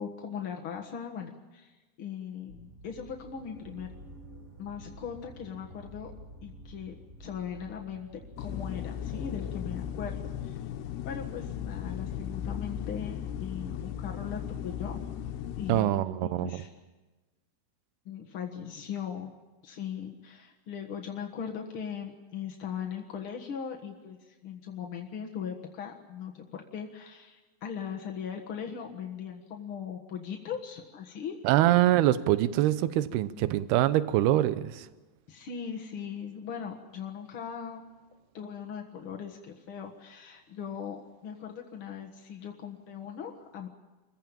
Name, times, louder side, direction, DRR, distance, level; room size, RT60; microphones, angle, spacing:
voice 1, 0.0-1.7 2.0-3.9 4.6-6.1 6.4-10.2 10.4-10.6 11.0-15.0 15.6-15.9 16.2-16.7 18.0-19.3 19.6-31.4 35.3-37.8 38.3-43.7, left 7 dB, 65° left, 1 dB, 1.3 m, -39 dB
sound 1, 2.5-15.0, equal, 30° right, 1.8 m, -51 dB
sound 2, 8.4-15.8, left 9 dB, 80° left, 3.0 m, -36 dB
voice 2, 15.7-16.6 31.4-34.9, right 14 dB, 80° right, 14 dB, 2.7 m, -24 dB
26.0 x 15.0 x 8.8 m, 1.2 s
omnidirectional pair, 4.8 m